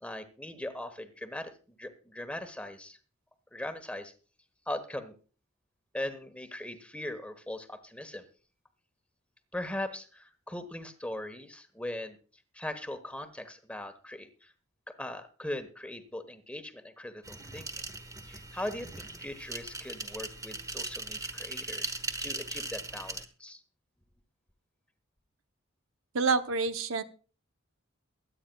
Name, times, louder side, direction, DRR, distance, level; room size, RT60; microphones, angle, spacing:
voice 1, 0.0-3.0 3.5-4.1 4.7-5.2 5.9-8.3 9.5-12.2 12.5-14.5 14.9-17.9 18.2-23.6, left 1 dB, 5° left, 8 dB, 1.2 m, -40 dB
sound 1, 17.2-23.2, right 2 dB, 15° right, 1.2 m, -39 dB
voice 2, 26.1-27.0, right 4 dB, 70° right, 10 dB, 0.8 m, -27 dB
23.0 x 9.2 x 2.3 m, 0.37 s
head